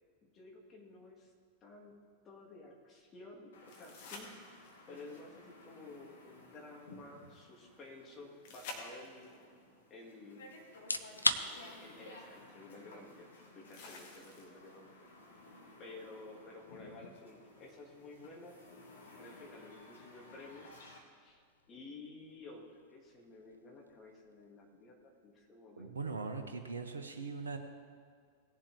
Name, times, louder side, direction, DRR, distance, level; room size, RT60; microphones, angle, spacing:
voice 1, 0.2-1.3 1.6-4.4 4.9-9.4 9.9-10.6 11.8-15.1 15.8-18.6 19.1-20.8 21.2-21.4 21.7-26.2, left 2 dB, 25° left, -1 dB, 2.4 m, -53 dB
sound 1, 3.5-21.0, left 2 dB, 65° left, 1.6 m, -57 dB
sound 2, 3.7-5.0 8.4-9.4 11.3-11.4 13.7-14.8 17.7-17.8, left 3 dB, 50° left, 1.8 m, -49 dB
sound 3, 10.7-25.6, left 2 dB, 85° left, 0.4 m, -44 dB
voice 2, 25.8-27.6, right 4 dB, 70° right, 6 dB, 0.9 m, -40 dB
18.0 x 7.3 x 3.6 m, 2.1 s
figure-of-eight pair, 90°, 0 cm